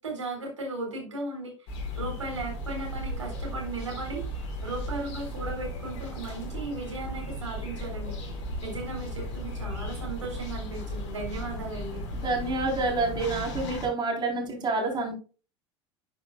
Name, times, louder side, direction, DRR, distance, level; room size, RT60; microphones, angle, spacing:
voice 1, 0.0-1.7 1.9-8.2 8.6-12.0, right 2 dB, 80° right, -1 dB, 4.0 m, -36 dB
sound 1, 1.7-13.9, equal, 60° left, 4.5 m, -36 dB
voice 2, 12.1-15.1, right 3 dB, 30° right, 0 dB, 3.9 m, -28 dB
11.0 x 8.8 x 2.3 m, 0.34 s
figure-of-eight pair, 75°, 16 cm